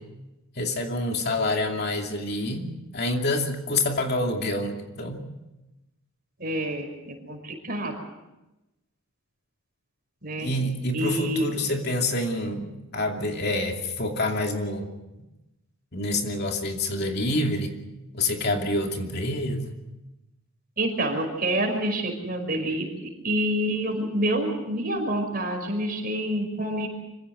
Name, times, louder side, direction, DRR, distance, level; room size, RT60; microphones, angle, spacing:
voice 1, 0.6-5.3 10.4-14.9 15.9-17.7 18.1-19.7, left 1 dB, 50° left, 3 dB, 2.6 m, -27 dB
voice 2, 6.4-8.0 10.2-10.5 10.9-11.5 20.8-22.9 23.2-26.9, right 1 dB, 45° right, 3 dB, 5.6 m, -27 dB
25.5 x 16.0 x 8.0 m, 1.0 s
head